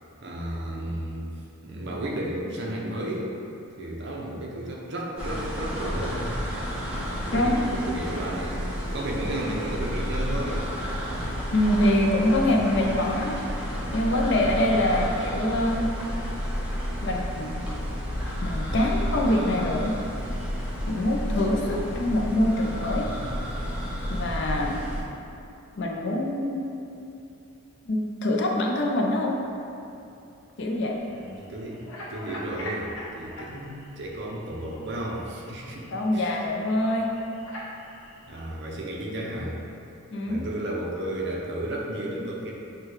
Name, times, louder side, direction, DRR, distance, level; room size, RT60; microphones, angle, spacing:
voice 1, 0.2-1.3 1.6-3.3 3.8-6.3 7.2-10.6 31.1-31.8 32.1-36.4 38.3-39.6 40.2-42.5, right 1 dB, 50° right, -2 dB, 0.6 m, -33 dB
sound 1, 5.2-25.0, equal, 5° right, 0.6 m, -31 dB
voice 2, 7.3-7.7 11.5-13.6 13.9-15.9 17.0-17.7 18.4-20.0 20.9-23.1 24.1-24.8 25.7-26.7 27.9-29.4 30.6-31.1 35.9-37.1 40.1-40.4, left 1 dB, 55° left, 0 dB, 0.4 m, -25 dB
sound 2, 30.7-38.5, equal, 70° left, 0.9 m, -43 dB
6.3 x 2.2 x 3.1 m, 2.7 s
head